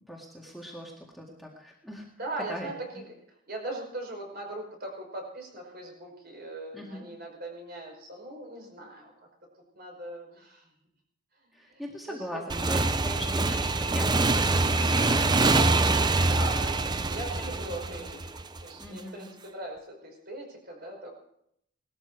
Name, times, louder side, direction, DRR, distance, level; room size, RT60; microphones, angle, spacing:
voice 1, 0.1-2.1 2.5-2.7 6.7-7.1 11.5-16.2 16.6-17.4 17.7-18.1 18.8-19.3, equal, ahead, -2 dB, 2.0 m, -41 dB
voice 2, 2.2-3.0 3.5-9.1 9.7-10.7 11.7-12.4 16.3-21.1, right 2 dB, 50° right, 1 dB, 5.3 m, -40 dB
Motorcycle / Engine, 12.5-18.9, right 2 dB, 20° right, 0.6 m, -25 dB
19.0 x 13.5 x 4.7 m, 0.74 s
head